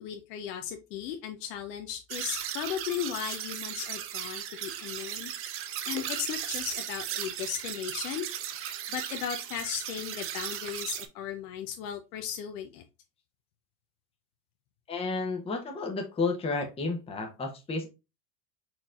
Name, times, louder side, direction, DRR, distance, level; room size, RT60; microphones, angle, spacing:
voice 1, 0.0-5.3 5.9-8.3 8.9-12.8, left 9 dB, 70° left, 0.8 m, -36 dB
sound 1, 2.1-11.1, right 10 dB, 30° right, 0.4 m, -36 dB
voice 2, 14.9-17.9, left 3 dB, 10° left, 0.7 m, -31 dB
4.4 x 4.1 x 2.4 m
supercardioid pair, 115°, 49 cm